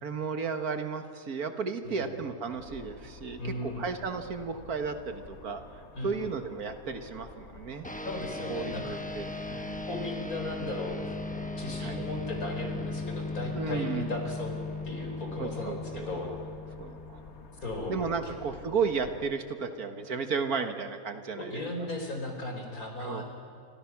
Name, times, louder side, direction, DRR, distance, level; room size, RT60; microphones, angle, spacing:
voice 1, 0.0-5.6 6.0-7.9 8.5-9.9 11.8-12.1 13.5-14.1 15.4-16.4 16.8-17.2 17.9-21.6 23.0-23.2, right 5 dB, 80° right, 7 dB, 2.0 m, -34 dB
sound 1, 2.5-19.3, left 4 dB, 50° left, 1.5 m, -50 dB
voice 2, 3.4-3.9 5.9-6.2 8.0-9.0 9.9-14.5 14.8-16.3 17.6-18.0 18.2-18.3 21.3-23.2, left 2 dB, 70° left, 2 dB, 4.9 m, -37 dB
sound 2, 7.8-17.6, left 3 dB, 5° left, 0.7 m, -37 dB
28.5 x 26.0 x 6.1 m, 2.6 s
omnidirectional pair, 1.6 m